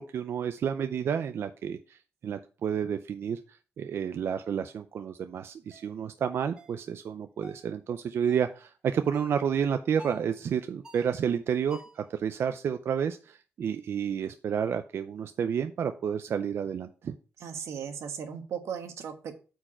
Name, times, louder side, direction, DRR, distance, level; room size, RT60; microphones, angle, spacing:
voice 1, 0.0-17.1, right 7 dB, 60° right, 9 dB, 0.5 m, -30 dB
sound 1, 5.7-5.9 6.6-6.8 7.4-7.7 8.3-8.5 9.1-9.4 10.0-10.3 10.8-11.2 11.7-12.1, left 1 dB, 10° right, 4.2 m, -50 dB
voice 2, 17.4-19.3, right 7 dB, 90° right, 7 dB, 1.3 m, -37 dB
8.8 x 4.7 x 4.3 m, 0.35 s
wide cardioid pair, 155°, 5 cm